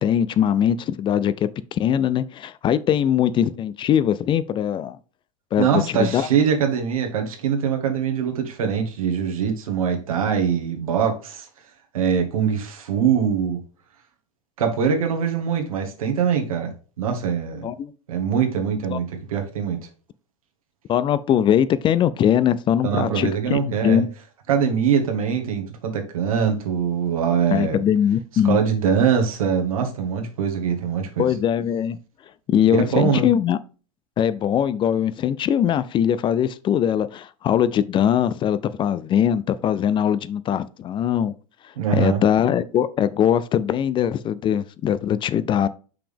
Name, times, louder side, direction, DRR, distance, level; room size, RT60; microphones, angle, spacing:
voice 1, 0.0-1.5 1.8-5.0 5.5-6.3 17.6-17.9 18.9-19.0 20.9-24.1 27.5-28.6 31.2-32.0 32.5-33.6 34.2-41.3 41.9-45.7, left 9 dB, 30° left, 0.4 m, -21 dB
voice 2, 5.6-11.5 11.9-13.6 14.6-16.7 17.0-17.7 18.1-19.8 22.8-24.0 24.5-27.8 28.4-31.3 32.7-33.3 41.8-42.2, right 7 dB, 85° right, 1.6 m, -23 dB
5.9 x 5.1 x 3.4 m
hypercardioid pair, 105°, 18 cm